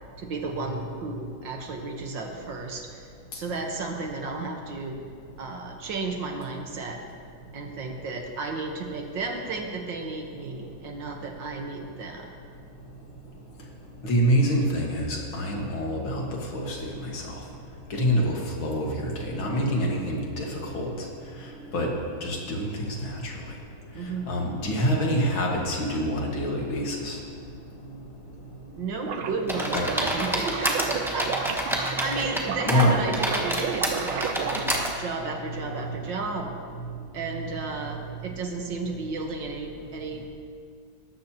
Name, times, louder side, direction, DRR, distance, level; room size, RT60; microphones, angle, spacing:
voice 1, 0.2-3.0 3.4-5.1 5.4-7.0 7.5-12.4 23.9-24.3 28.8-34.7 35.0-36.5 37.1-40.3, right 3 dB, 65° right, 2 dB, 1.9 m, -33 dB
voice 2, 12.5-28.8 29.7-29.9 31.9-32.0 32.7-32.9 34.7-35.0 35.6-36.1 36.8-37.2 38.0-38.3, equal, 70° left, -1 dB, 2.6 m, -28 dB
sound 1, 29.0-34.9, right 8 dB, 80° right, 1.5 m, -33 dB
sound 2, 29.5-32.4 32.7-34.9, equal, ahead, 0.9 m, -28 dB
18.5 x 13.5 x 2.9 m, 2.2 s
omnidirectional pair, 2.3 m